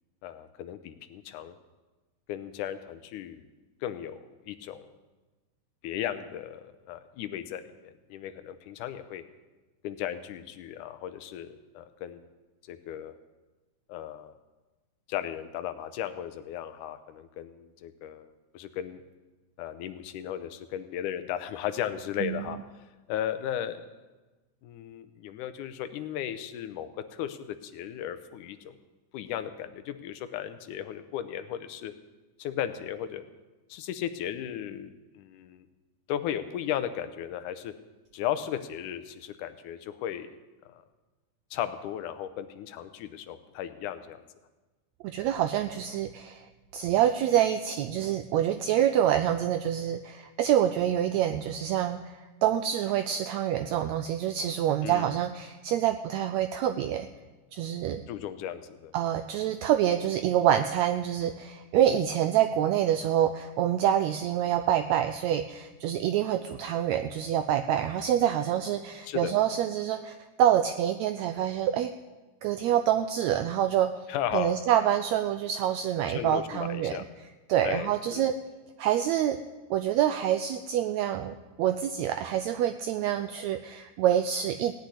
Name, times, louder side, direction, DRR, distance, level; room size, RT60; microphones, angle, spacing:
voice 1, 0.2-1.6 2.3-3.5 3.8-4.9 5.8-9.2 9.8-12.3 12.7-13.1 13.9-14.3 15.1-19.0 19.6-22.6 23.1-23.9 24.6-28.8 29.1-31.9 32.4-33.2 33.7-35.7 36.1-37.7 38.1-40.4 40.7-40.8 41.5-44.2 54.8-55.1 58.1-58.9 69.0-69.3 74.1-74.6 76.1-77.1 77.6-78.3, left 10 dB, 80° left, 11 dB, 2.1 m, -36 dB
voice 2, 45.0-46.5 46.7-57.1 57.5-58.0 58.9-71.9 72.4-73.9 74.3-77.0 77.5-78.3 78.8-79.4 79.7-84.7, right 10 dB, 85° right, 9 dB, 1.6 m, -26 dB
17.0 x 6.6 x 9.7 m, 1.2 s
omnidirectional pair, 3.8 m